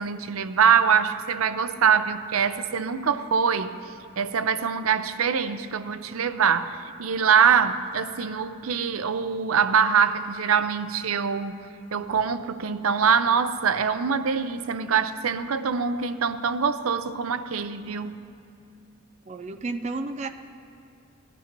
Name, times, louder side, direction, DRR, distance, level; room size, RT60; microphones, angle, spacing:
voice 1, 0.0-3.8 4.2-11.6 11.9-18.2, right 6 dB, 85° right, 11 dB, 0.6 m, -24 dB
voice 2, 19.3-20.3, right 3 dB, 35° right, 6 dB, 0.4 m, -32 dB
19.0 x 12.0 x 3.0 m, 2.7 s
head